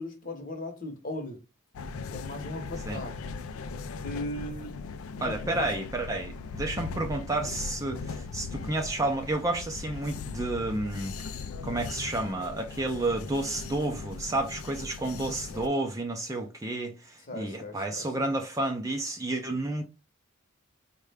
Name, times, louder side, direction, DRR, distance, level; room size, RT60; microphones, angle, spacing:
voice 1, 0.0-1.4 2.1-3.2 4.0-4.7 5.2-5.7 6.2-6.3 17.3-18.3, left 1 dB, 40° left, 0.9 m, -38 dB
sound 1, 1.7-15.7, left 4 dB, 85° left, 0.4 m, -39 dB
voice 2, 5.2-11.1 11.6-19.8, right 2 dB, 15° right, 0.4 m, -31 dB
4.6 x 2.2 x 3.3 m
head